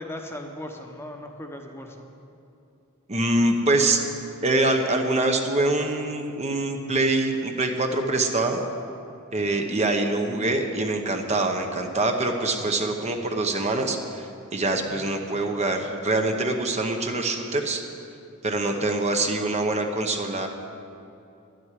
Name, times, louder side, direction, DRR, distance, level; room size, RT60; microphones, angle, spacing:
voice 1, 0.0-2.0 9.3-9.7 14.8-15.4 18.7-18.8, left 1 dB, 10° left, 3 dB, 1.0 m, -39 dB
voice 2, 3.1-4.0 4.4-8.6 9.3-14.3 14.5-17.8 18.4-20.5, right 2 dB, 30° right, 4 dB, 0.9 m, -24 dB
11.0 x 7.8 x 9.8 m, 2.7 s
head